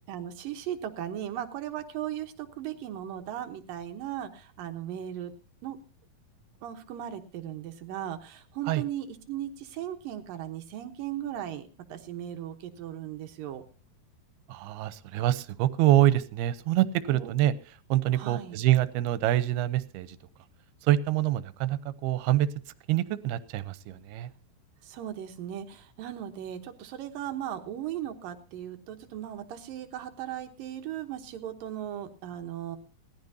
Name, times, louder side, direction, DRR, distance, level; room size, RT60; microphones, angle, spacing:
voice 1, 0.1-5.3 5.6-5.8 6.6-13.6 17.1-17.3 18.1-18.6 24.8-32.8, right 11 dB, 70° right, 6 dB, 2.6 m, -37 dB
voice 2, 14.5-17.5 17.9-20.2 20.8-22.5 22.9-24.3, right 14 dB, 85° right, 15 dB, 2.8 m, -25 dB
19.5 x 14.5 x 2.8 m, 0.36 s
omnidirectional pair, 4.5 m